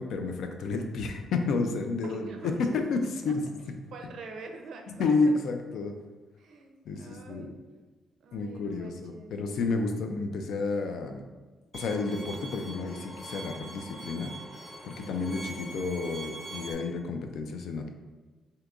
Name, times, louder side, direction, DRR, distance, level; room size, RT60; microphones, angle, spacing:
voice 1, 0.0-3.4 5.0-5.9 6.9-7.5 8.3-11.2 11.7-14.3 14.8-17.9, left 3 dB, 70° left, 5 dB, 0.3 m, -30 dB
voice 2, 2.0-2.6 3.3-3.4 3.9-5.4 6.4-7.5 8.2-9.3, right 4 dB, 60° right, 3 dB, 0.4 m, -45 dB
Bowed string instrument, 11.7-16.7, right 2 dB, 10° left, 0.8 m, -43 dB
3.6 x 2.7 x 2.3 m, 1.3 s
cardioid pair, 160°, 0 cm